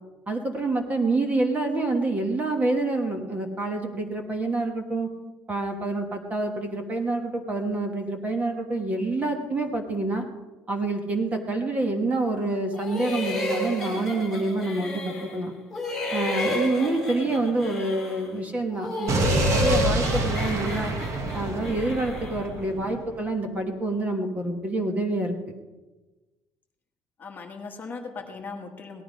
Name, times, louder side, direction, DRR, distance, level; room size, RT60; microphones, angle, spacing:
voice 1, 0.3-5.1 5.5-10.3 10.7-15.5 16.1-20.9 21.3-25.3, right 2 dB, 20° right, 4 dB, 1.3 m, -27 dB
sound 1, 12.7-15.4 15.7-18.3 18.7-22.5, left 1 dB, 5° left, 4.1 m, -31 dB
Explosion, 19.1-23.1, right 2 dB, 40° right, 1.2 m, -27 dB
voice 2, 27.2-29.0, left 4 dB, 25° left, 3 dB, 1.3 m, -38 dB
18.0 x 12.0 x 5.2 m, 1.2 s
cardioid pair, 180°, 8 cm